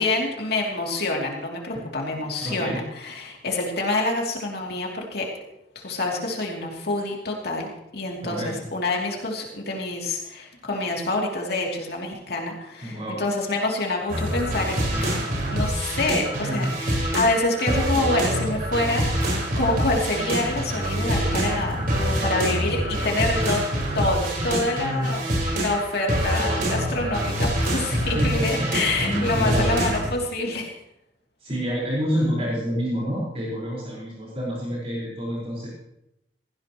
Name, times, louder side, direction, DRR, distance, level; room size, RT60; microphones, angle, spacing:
voice 1, 0.0-5.3 5.7-15.1 15.5-23.6 23.9-25.2 25.5-30.7, left 2 dB, 65° left, -1 dB, 3.0 m, -27 dB
voice 2, 2.4-2.8 8.2-8.6 12.8-13.2 15.1-15.3 16.5-17.1 27.9-28.7 29.0-29.7 31.4-35.7, equal, 40° right, -6 dB, 4.8 m, -28 dB
sound 1, 14.1-30.1, right 1 dB, 55° right, 5.0 m, -25 dB
18.0 x 15.0 x 3.1 m, 0.84 s
head